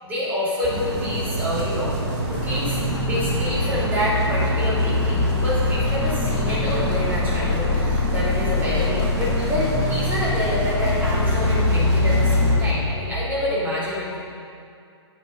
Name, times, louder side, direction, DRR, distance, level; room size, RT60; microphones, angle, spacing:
voice 1, 0.0-1.9 2.3-14.2, left 1 dB, 10° right, -8 dB, 2.7 m, -27 dB
sound 1, 0.6-12.6, right 1 dB, 45° right, 2.5 m, -27 dB
sound 2, 2.3-12.8, left 3 dB, 40° left, 2.7 m, -23 dB
8.9 x 7.8 x 5.3 m, 2.3 s
figure-of-eight pair, 125°, 14 cm